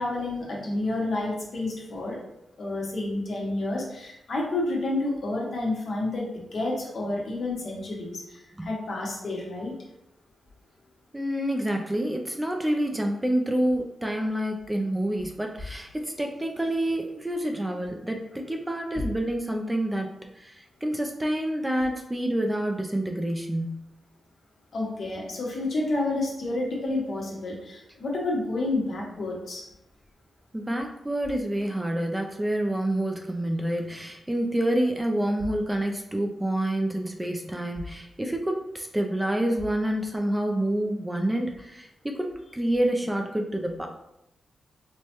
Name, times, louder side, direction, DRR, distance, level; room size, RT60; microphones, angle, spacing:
voice 1, 0.0-2.2 2.6-9.7 19.0-19.1 24.7-29.7, left 2 dB, 55° left, -2 dB, 1.0 m, -30 dB
voice 2, 11.1-20.1 20.3-23.8 30.5-43.9, right 1 dB, 10° right, 2 dB, 0.3 m, -28 dB
4.6 x 2.1 x 2.9 m, 0.86 s
wide cardioid pair, 145°, 0 cm